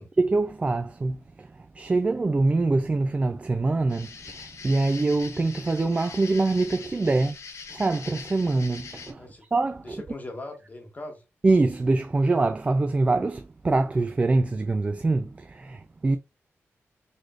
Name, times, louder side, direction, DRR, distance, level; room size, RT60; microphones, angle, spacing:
voice 1, 0.0-1.5 1.8-7.4 7.7-9.2 9.5-10.0 11.4-16.2, right 3 dB, 25° right, 0.3 m, -24 dB
sound 1, 3.9-9.1, left 5 dB, 75° left, 0.7 m, -42 dB
voice 2, 9.8-11.2, left 2 dB, 35° left, 1.1 m, -40 dB
4.1 x 3.1 x 2.4 m
cardioid pair, 90°, 5 cm